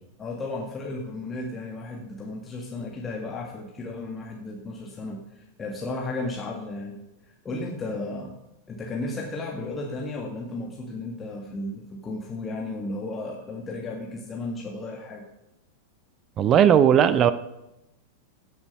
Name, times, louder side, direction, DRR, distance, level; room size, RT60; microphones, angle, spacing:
voice 1, 0.2-8.4 8.7-15.2, left 2 dB, 20° left, -1 dB, 1.8 m, -34 dB
voice 2, 16.4-17.3, right 9 dB, 30° right, 15 dB, 0.6 m, -17 dB
16.0 x 7.0 x 5.6 m, 0.90 s
figure-of-eight pair, 90°, 0 cm